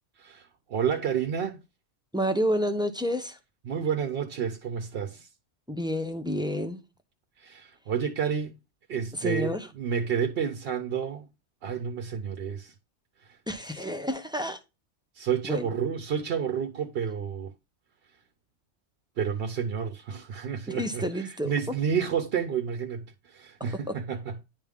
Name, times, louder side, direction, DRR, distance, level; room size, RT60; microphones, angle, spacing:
voice 1, 0.2-1.6 3.7-5.3 7.4-8.5 8.9-11.3 11.6-12.7 13.2-13.4 15.1-17.5 19.2-24.4, right 7 dB, 65° right, 0.8 m, -30 dB
voice 2, 2.1-3.4 5.7-6.8 9.2-9.7 13.5-14.6 15.5-15.7 20.7-21.5 23.6-24.0, equal, 5° right, 0.7 m, -29 dB
10.0 x 3.6 x 3.5 m
omnidirectional pair, 1.2 m